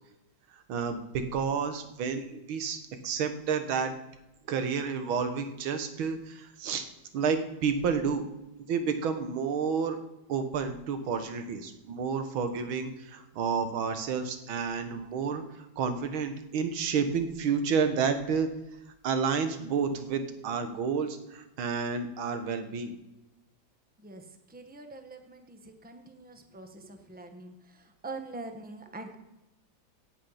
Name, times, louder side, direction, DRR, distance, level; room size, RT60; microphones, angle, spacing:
voice 1, 0.5-3.9 4.5-6.9 7.1-8.2 8.7-10.0 10.3-18.5 19.0-23.0, right 6 dB, 90° right, 8 dB, 1.9 m, -30 dB
voice 2, 24.0-29.2, right 2 dB, 10° right, 6 dB, 0.6 m, -44 dB
17.0 x 6.5 x 5.6 m, 0.97 s
omnidirectional pair, 2.2 m